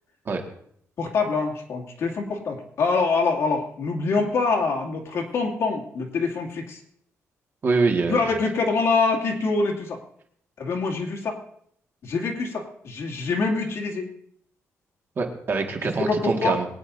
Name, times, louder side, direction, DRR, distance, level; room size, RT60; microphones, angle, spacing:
voice 1, 1.0-6.8 8.1-10.0 10.6-11.4 12.0-14.1 15.8-16.6, left 4 dB, 60° left, 0 dB, 2.4 m, -25 dB
voice 2, 7.6-8.3 15.2-16.7, right 4 dB, 40° right, 2 dB, 1.9 m, -24 dB
22.5 x 9.8 x 2.7 m, 0.66 s
cardioid pair, 130°, 6 cm